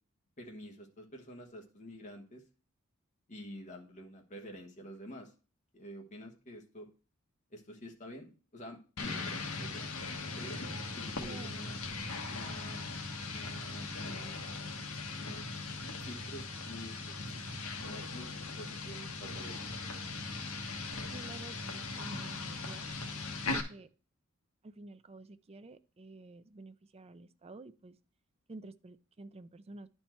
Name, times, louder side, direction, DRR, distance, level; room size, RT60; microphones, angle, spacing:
voice 1, 0.4-2.4 3.3-5.3 5.7-6.9 7.5-9.9 10.4-10.6 10.9-11.8 12.3-12.9 13.3-14.7 15.1-15.7 16.0-17.3 17.8-19.6, equal, 35° left, 1.4 m, -48 dB
sound 1, 9.0-23.6, left 3 dB, 70° left, 1.4 m, -39 dB
voice 2, 11.2-11.5 21.1-22.9 23.4-23.9 24.6-28.0 28.5-29.9, right 2 dB, 30° right, 0.4 m, -50 dB
10.5 x 4.4 x 4.5 m
head